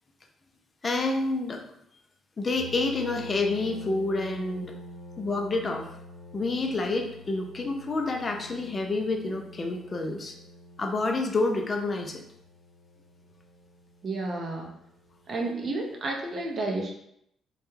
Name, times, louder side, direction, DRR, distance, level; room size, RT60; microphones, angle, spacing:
voice 1, 0.8-1.6 2.4-4.7 5.2-5.9 6.3-10.4 10.8-12.2, left 3 dB, 35° left, 3 dB, 0.4 m, -28 dB
sound 1, 2.5-15.9, left 2 dB, 65° left, 0.8 m, -47 dB
voice 2, 14.0-14.7 15.3-16.9, right 2 dB, 45° right, 0 dB, 0.5 m, -31 dB
2.2 x 2.1 x 3.1 m, 0.74 s
cardioid pair, 90°, 0 cm